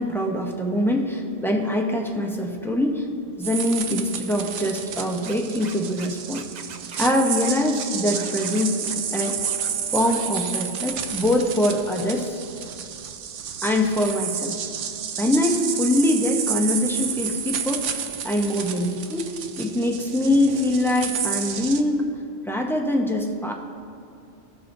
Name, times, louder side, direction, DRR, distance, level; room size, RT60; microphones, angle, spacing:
voice 1, 0.0-3.1 3.4-6.4 7.0-9.4 9.9-12.4 13.6-14.6 15.2-17.9 18.2-22.0 22.4-23.5, left 1 dB, 5° left, 0 dB, 0.4 m, -23 dB
sound 1, 3.4-21.8, right 8 dB, 75° right, 0.9 m, -31 dB
Scratching (performance technique), 5.2-6.1 6.3-7.1 7.4-7.5 7.8-9.7 10.0-10.5, right 6 dB, 55° right, 0.5 m, -40 dB
15.5 x 6.2 x 2.6 m, 2.7 s
omnidirectional pair, 1.3 m